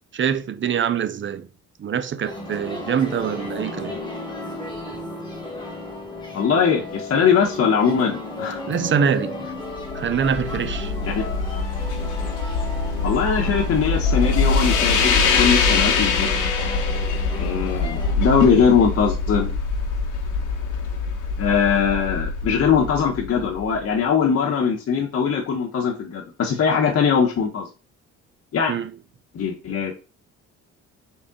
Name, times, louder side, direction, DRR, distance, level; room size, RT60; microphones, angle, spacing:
voice 1, 0.1-1.5 1.8-4.0 8.7-9.5 9.9-10.9 28.7-28.9, right 7 dB, 40° right, 0.5 m, -24 dB
sound 1, 2.2-18.1, left 2 dB, 15° left, 1.3 m, -34 dB
voice 2, 6.3-8.6 11.0-11.1 13.0-16.3 17.4-19.5 21.4-27.7 28.5-28.7 29.3-29.9, left 6 dB, 55° left, 1.1 m, -21 dB
sound 2, 9.7-23.8, left 4 dB, 80° left, 1.3 m, -23 dB
4.1 x 3.5 x 3.7 m
cardioid pair, 90°, 30 cm